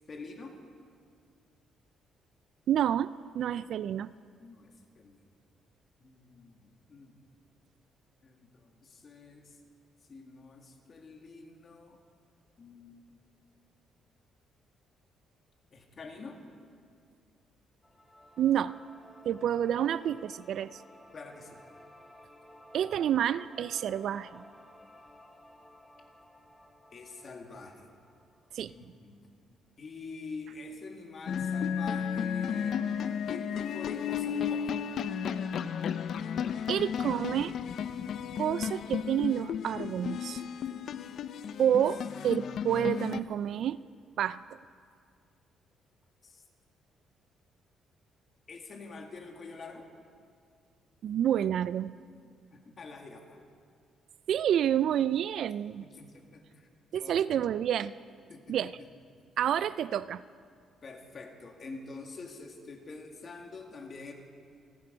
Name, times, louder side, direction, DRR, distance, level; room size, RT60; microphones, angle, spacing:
voice 1, 0.1-0.6 4.4-5.2 6.0-7.2 8.2-9.6 10.1-12.0 12.6-13.2 15.7-16.4 19.3-19.4 21.1-21.6 26.9-27.9 28.6-29.3 29.8-32.9 33.3-34.8 46.2-46.4 48.5-49.9 52.5-53.4 55.8-56.7 57.0-57.2 58.3-58.5 60.8-64.1, left 3 dB, 40° left, 3 dB, 2.1 m, -46 dB
voice 2, 2.7-4.1 18.4-18.8 19.3-20.8 22.7-24.4 28.6-28.7 36.7-37.6 38.4-40.4 41.6-43.8 44.2-44.6 51.0-51.9 54.3-55.9 56.9-57.9 58.5-58.8 59.4-60.2, right 10 dB, 65° right, 17 dB, 0.3 m, -29 dB
sound 1, 17.8-28.9, left 1 dB, 5° left, 1.5 m, -55 dB
sound 2, 31.3-43.2, left 7 dB, 55° left, 0.5 m, -33 dB
28.0 x 9.9 x 5.3 m, 2.2 s
cardioid pair, 130°, 0 cm